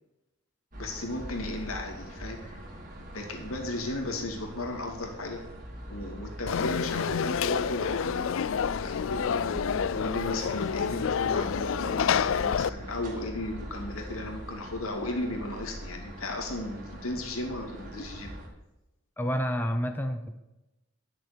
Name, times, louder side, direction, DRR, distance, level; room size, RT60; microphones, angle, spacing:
sound 1, 0.7-18.5, equal, 40° right, 2.8 m, -42 dB
voice 1, 0.8-2.6 3.1-5.4 5.9-8.2 8.8-9.4 9.9-18.3, left 2 dB, 85° left, 2 dB, 2.5 m, -35 dB
Conversation / Crowd, 6.5-12.7, left 7 dB, 65° left, 0.4 m, -28 dB
voice 2, 19.2-20.4, equal, 10° left, 6 dB, 0.7 m, -29 dB
11.5 x 6.6 x 6.7 m, 0.97 s
head